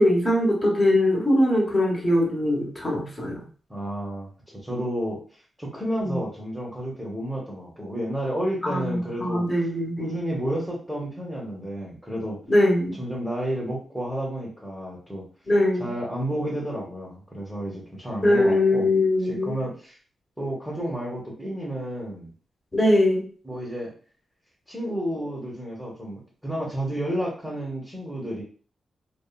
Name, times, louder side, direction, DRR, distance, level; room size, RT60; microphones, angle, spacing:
voice 1, 0.0-3.4 6.0-6.2 8.6-10.2 12.5-13.0 15.5-15.9 18.2-19.5 22.7-23.2, left 1 dB, 25° left, -2 dB, 1.2 m, -21 dB
voice 2, 3.7-5.2 5.6-9.5 10.0-12.4 13.0-15.2 15.8-18.9 19.2-20.0 20.4-22.3 23.4-23.9 24.7-28.4, equal, ahead, -5 dB, 1.0 m, -31 dB
2.7 x 2.4 x 2.3 m, 0.41 s
cardioid pair, 60°, 0 cm